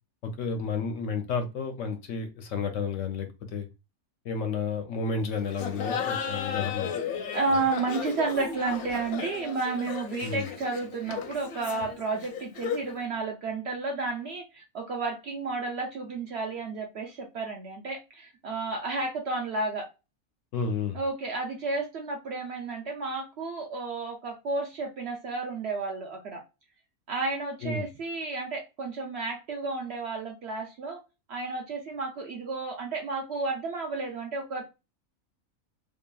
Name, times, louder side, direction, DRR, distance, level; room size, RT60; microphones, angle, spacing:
voice 1, 0.2-3.7 4.2-6.9 10.2-10.5 20.5-21.0 27.6-27.8, left 5 dB, 70° left, 0.8 m, -31 dB
Laughter, 5.5-13.0, left 7 dB, 90° left, 1.1 m, -35 dB
voice 2, 7.3-19.9 20.9-26.4 27.1-31.0 31.3-34.6, right 3 dB, 65° right, 0.7 m, -32 dB
2.8 x 2.5 x 2.2 m
omnidirectional pair, 1.5 m